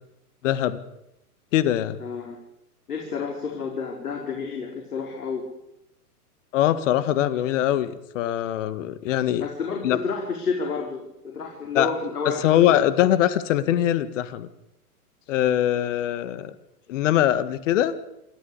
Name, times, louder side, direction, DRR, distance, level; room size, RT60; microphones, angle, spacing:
voice 1, 0.4-0.8 1.5-2.0 6.5-9.5 9.8-10.0 11.7-11.9 12.3-14.5 15.3-16.5 16.9-18.0, left 12 dB, 50° left, 13 dB, 1.9 m, -22 dB
voice 2, 2.0-2.4 2.9-5.4 9.4-12.5, left 5 dB, 75° left, 1 dB, 4.8 m, -30 dB
27.5 x 14.0 x 8.4 m, 0.87 s
hypercardioid pair, 115°, 46 cm